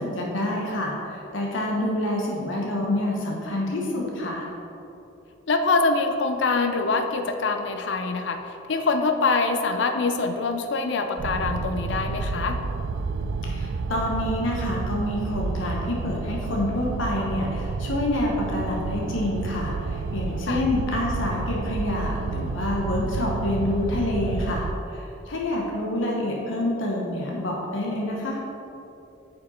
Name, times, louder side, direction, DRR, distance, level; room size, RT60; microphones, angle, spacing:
voice 1, 0.0-4.5 13.4-28.4, left 1 dB, 85° left, -2 dB, 1.1 m, -27 dB
voice 2, 5.5-12.6 20.5-20.6, left 3 dB, 65° left, 6 dB, 0.5 m, -24 dB
sound 1, 11.2-24.7, right 4 dB, 80° right, 0.4 m, -30 dB
8.7 x 5.3 x 4.3 m, 2.9 s
head